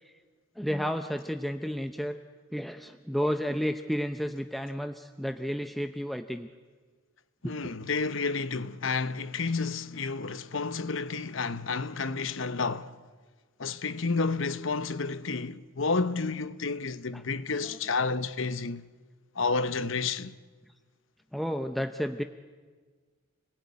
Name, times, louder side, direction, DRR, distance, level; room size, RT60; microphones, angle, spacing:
voice 1, 0.6-2.2 2.5-6.5 7.4-7.5 17.1-17.2 21.3-22.2, equal, ahead, 0.7 m, -31 dB
voice 2, 7.4-13.0 13.6-18.8 19.4-20.3, left 4 dB, 65° left, 0.9 m, -30 dB
29.5 x 20.0 x 9.7 m
head